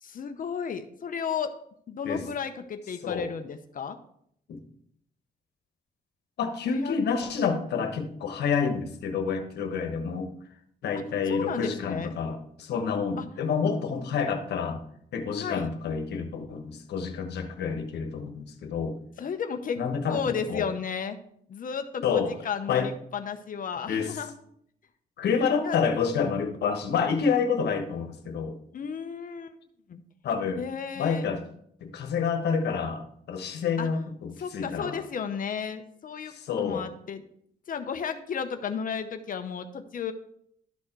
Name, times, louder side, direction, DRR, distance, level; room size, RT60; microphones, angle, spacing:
voice 1, 0.0-1.5 1.9-4.0 6.6-7.0 11.3-12.2 13.2-13.3 15.4-15.7 19.2-19.8 20.1-21.2 21.5-24.3 25.6-25.8 28.7-29.5 29.9-30.0 30.6-31.3 33.8-33.9 34.4-37.2 37.7-40.1, left 6 dB, 55° left, 8 dB, 0.8 m, -33 dB
voice 2, 6.4-10.3 10.8-14.8 15.1-19.0 19.8-20.7 22.0-22.3 22.7-22.9 23.9-24.2 25.2-28.6 30.2-30.6 31.0-31.4 31.8-35.0 36.3-36.8, left 6 dB, 85° left, 6 dB, 1.2 m, -28 dB
12.5 x 4.2 x 4.5 m, 0.68 s
cardioid pair, 90°, 17 cm